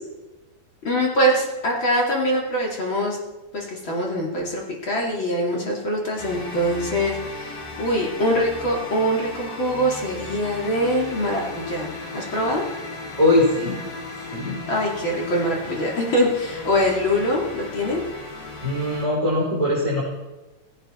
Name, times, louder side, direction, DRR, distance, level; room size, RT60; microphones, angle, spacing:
voice 1, 0.8-3.2 3.5-12.6 14.7-18.0, equal, 35° left, -2 dB, 3.0 m, -23 dB
sound 1, 6.2-19.1, left 3 dB, 85° left, 4.2 m, -36 dB
voice 2, 13.2-13.8 14.3-14.6 18.6-20.0, left 1 dB, 10° right, -6 dB, 3.9 m, -21 dB
16.5 x 16.0 x 4.5 m, 1.1 s
omnidirectional pair, 4.0 m